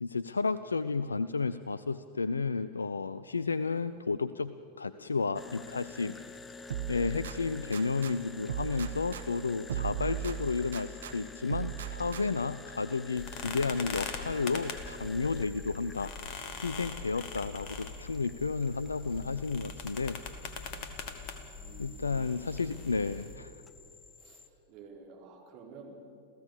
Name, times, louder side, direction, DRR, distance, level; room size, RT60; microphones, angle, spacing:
voice 1, 0.0-6.2 6.9-16.1 16.6-20.2 21.8-23.5, left 4 dB, 75° left, 15 dB, 0.4 m, -32 dB
sound 1, 5.3-24.5, left 3 dB, 15° left, 1.0 m, -50 dB
sound 2, 6.7-8.1 8.5-11.1 11.5-12.5, right 10 dB, 65° right, 1.1 m, -38 dB
sound 3, 13.2-23.4, left 5 dB, 40° left, 2.0 m, -42 dB
voice 2, 21.6-22.9 24.2-24.4 24.7-26.0, right 5 dB, 40° right, -1 dB, 4.8 m, -51 dB
28.0 x 15.5 x 6.8 m, 2.6 s
figure-of-eight pair, 90°, 0 cm